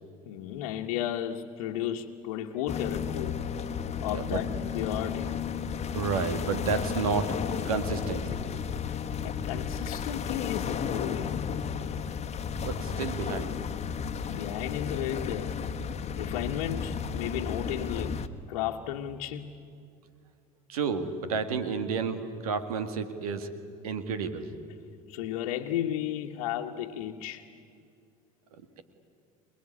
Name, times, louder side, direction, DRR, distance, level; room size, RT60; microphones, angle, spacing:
voice 1, 0.3-3.4 4.0-5.3 9.2-11.9 14.3-15.6 16.1-18.2 18.5-19.5 25.1-27.5, left 11 dB, 75° left, 0 dB, 1.4 m, -34 dB
sound 1, 2.7-18.3, left 7 dB, 35° left, 1.4 m, -33 dB
voice 2, 4.1-4.4 5.9-7.4 7.6-8.4 12.6-13.5 20.7-23.5 23.8-24.5, right 5 dB, 85° right, 10 dB, 1.9 m, -31 dB
27.5 x 20.0 x 9.8 m, 2.4 s
hypercardioid pair, 75°, 18 cm